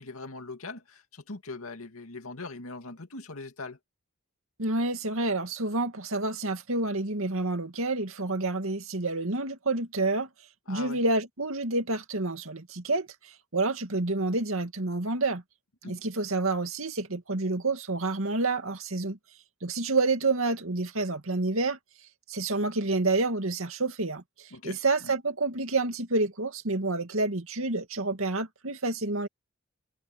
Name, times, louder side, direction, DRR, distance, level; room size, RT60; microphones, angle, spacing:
voice 1, 0.0-3.8 10.7-11.0 15.8-15.9 24.5-25.1, left 3 dB, 90° left, 2.4 m, -41 dB
voice 2, 4.6-10.3 10.7-15.4 15.8-19.2 19.6-21.8 22.3-29.3, right 2 dB, 80° right, 2.3 m, -28 dB
head